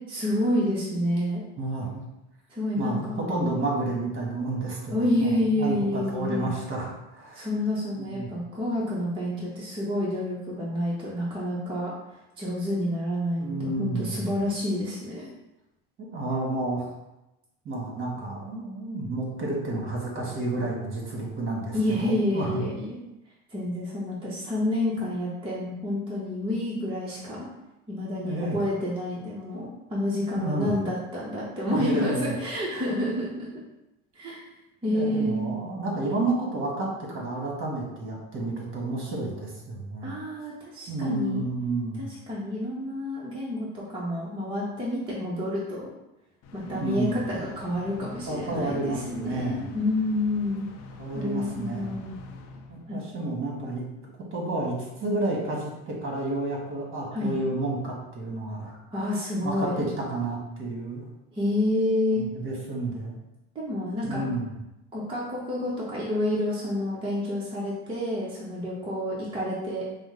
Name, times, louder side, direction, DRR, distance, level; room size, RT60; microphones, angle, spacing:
voice 1, 0.1-1.4 2.5-3.6 4.9-6.5 7.3-11.9 12.4-15.3 21.7-23.0 23.5-27.5 27.9-33.6 34.1-34.4 34.8-35.6 40.0-41.4 42.0-45.9 46.5-50.6 51.1-52.2 52.9-53.0 57.1-57.3 58.9-59.8 61.3-62.2 63.5-64.3 64.9-69.8, left 1 dB, 15° right, -6 dB, 0.9 m, -29 dB
voice 2, 1.6-1.9 2.8-7.5 8.0-8.3 13.4-14.3 16.0-16.9 17.6-22.6 28.2-28.6 30.4-30.7 31.6-32.3 34.9-40.1 40.9-42.1 46.7-47.2 48.3-49.6 51.0-51.9 52.7-53.8 54.3-58.8 59.4-61.0 62.1-63.2 64.0-64.5, right 2 dB, 40° right, -2 dB, 1.5 m, -30 dB
sound 1, 46.4-53.2, left 3 dB, 50° left, 0.6 m, -45 dB
5.0 x 2.1 x 3.8 m, 0.94 s
supercardioid pair, 110°, 31 cm